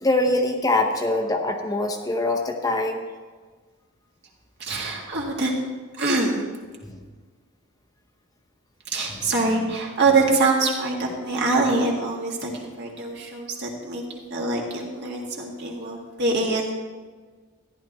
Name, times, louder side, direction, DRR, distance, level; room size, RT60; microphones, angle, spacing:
voice 1, 0.0-3.1 4.8-4.9 6.8-7.0 9.2-9.3, left 2 dB, 15° left, 3 dB, 0.7 m, -24 dB
voice 2, 4.6-5.5 6.0-6.4 8.9-14.0 14.3-16.7, right 3 dB, 55° right, -1 dB, 2.0 m, -24 dB
14.0 x 11.0 x 3.0 m, 1.4 s
head